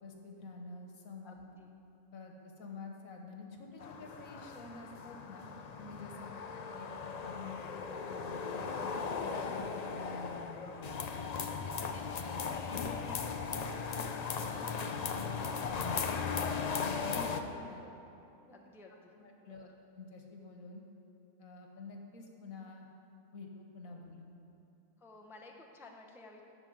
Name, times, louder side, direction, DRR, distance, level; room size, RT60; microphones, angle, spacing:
voice 1, 0.0-1.5 2.1-6.3 6.5-7.6 8.1-10.6 11.4-14.1 14.4-16.0 16.8-17.8 18.5-18.6 19.2-20.8 21.4-22.9 23.3-24.4, left 3 dB, 80° left, 2 dB, 1.6 m, -49 dB
voice 2, 1.2-1.7 6.1-6.5 10.7-11.0 11.4-12.0 18.5-19.1 19.4-19.6 23.9-24.0 25.0-26.4, left 2 dB, 5° right, 1 dB, 0.5 m, -56 dB
sound 1, 3.8-17.4, left 5 dB, 65° left, 0.4 m, -37 dB
10.5 x 6.1 x 7.9 m, 2.8 s
omnidirectional pair, 1.4 m